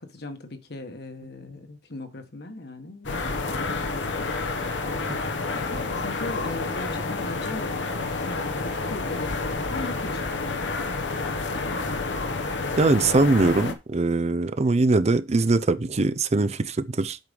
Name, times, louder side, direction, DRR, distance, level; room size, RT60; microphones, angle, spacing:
voice 1, 0.0-4.6 5.5-10.3 11.5-12.0, left 2 dB, 65° left, 1.4 m, -39 dB
sound 1, 3.0-13.7, left 3 dB, 90° left, 1.1 m, -29 dB
voice 2, 12.8-17.2, right 3 dB, 35° right, 0.5 m, -22 dB
7.9 x 4.9 x 5.3 m
head